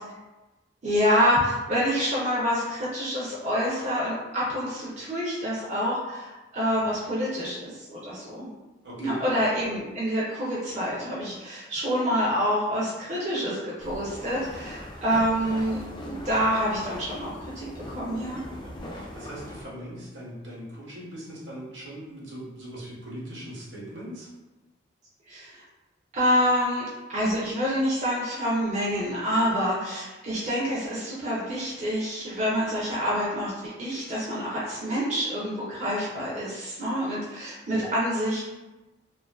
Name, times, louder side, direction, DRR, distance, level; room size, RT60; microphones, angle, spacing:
voice 1, 0.8-8.5 9.0-18.4 25.3-25.6 26.1-38.4, equal, 40° right, -6 dB, 0.5 m, -27 dB
voice 2, 8.8-9.2 18.4-24.3 37.7-37.9, right 1 dB, 75° right, -5 dB, 0.8 m, -40 dB
sound 1, 13.8-19.6, left 1 dB, 25° left, 0.3 m, -40 dB
2.4 x 2.4 x 2.3 m, 1.1 s
head